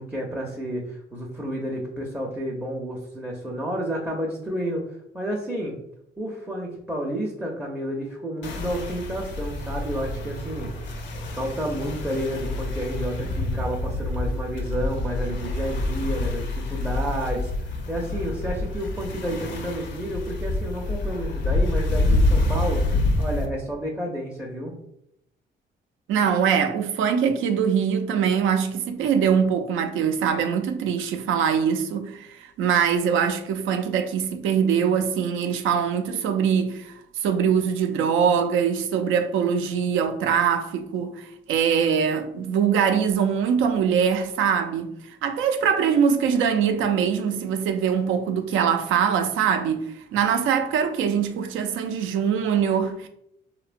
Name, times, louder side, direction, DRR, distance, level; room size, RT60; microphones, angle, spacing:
voice 1, 0.0-5.8 6.2-10.7 11.3-24.7, equal, 5° right, 0.5 m, -30 dB
sound 1, 8.4-23.5, left 2 dB, 65° left, 0.5 m, -27 dB
voice 2, 26.1-44.9 45.2-53.1, right 7 dB, 80° right, 0.4 m, -23 dB
2.8 x 2.1 x 2.4 m
cardioid pair, 90°, 20 cm